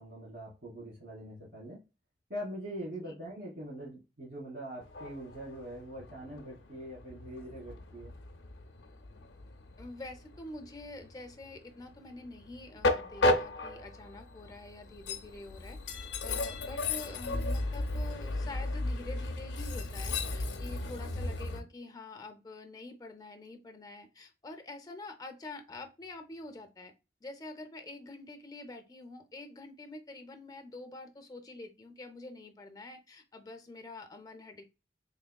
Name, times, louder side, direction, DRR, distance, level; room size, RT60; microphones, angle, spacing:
voice 1, 0.0-1.8 2.3-8.1, equal, 60° right, -5 dB, 1.6 m, -43 dB
Train, 4.8-21.6, left 2 dB, 75° left, 0.5 m, -35 dB
voice 2, 9.8-26.9 27.2-34.6, left 2 dB, 20° left, 5 dB, 0.5 m, -46 dB
3.5 x 3.4 x 2.2 m, 0.28 s
head